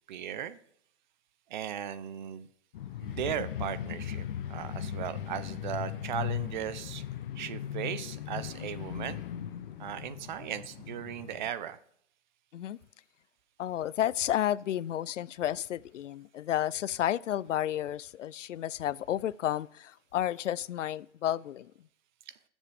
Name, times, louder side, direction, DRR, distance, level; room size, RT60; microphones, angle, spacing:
voice 1, 0.1-0.6 1.5-2.5 3.0-7.0 7.4-9.2 9.8-11.8 22.3-22.4, right 10 dB, 40° right, 0.8 m, -37 dB
sound 1, 2.7-11.5, left 10 dB, 50° left, 0.8 m, -38 dB
voice 2, 13.6-21.7, left 11 dB, 85° left, 0.5 m, -31 dB
21.0 x 7.3 x 3.5 m
hypercardioid pair, 150°, 36 cm